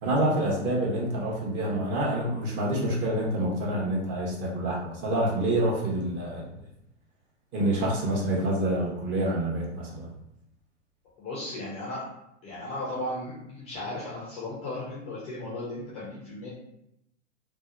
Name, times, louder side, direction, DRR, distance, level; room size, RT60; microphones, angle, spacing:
voice 1, 0.0-6.5 7.5-10.1, right 1 dB, 30° right, -2 dB, 0.7 m, -27 dB
voice 2, 11.2-12.0 12.4-16.5, left 1 dB, 20° left, -6 dB, 0.4 m, -35 dB
2.6 x 2.0 x 2.3 m, 0.81 s
figure-of-eight pair, 100°, 38 cm